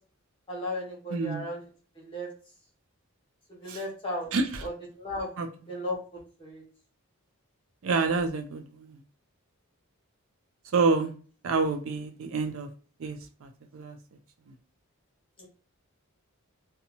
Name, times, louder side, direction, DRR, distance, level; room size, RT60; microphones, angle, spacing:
voice 1, 0.5-1.6 2.0-2.3 3.5-4.3 4.6-5.3 5.7-6.0 6.4-6.6 15.4-15.5, left 1 dB, 25° left, -3 dB, 1.1 m, -35 dB
voice 2, 1.1-1.4 3.7-3.8 4.3-4.5 5.4-5.5 7.8-8.6 10.7-11.1 11.4-12.7 13.0-13.2 13.7-13.9, right 4 dB, 65° right, 5 dB, 0.4 m, -27 dB
2.6 x 2.3 x 2.8 m, 0.39 s
head